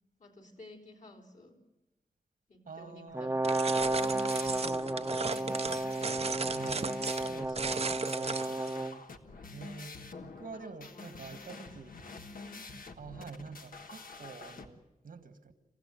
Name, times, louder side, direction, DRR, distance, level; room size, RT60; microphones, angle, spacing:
voice 1, 0.2-1.6 2.5-3.9 4.3-5.7 6.7-7.0 9.2-9.8 10.5-11.8 12.4-12.8, left 1 dB, 60° left, 3.7 m, -54 dB
voice 2, 2.7-3.4 6.5-8.9 9.5-11.9 13.0-15.5, right 5 dB, 80° right, 1.8 m, -47 dB
Brass instrument, 3.1-9.0, right 2 dB, 15° right, 0.8 m, -32 dB
sound 1, 3.4-8.7, right 4 dB, 45° right, 0.7 m, -36 dB
sound 2, 3.7-14.7, left 4 dB, 80° left, 1.5 m, -47 dB
27.0 x 15.5 x 7.8 m
wide cardioid pair, 105°, 14 cm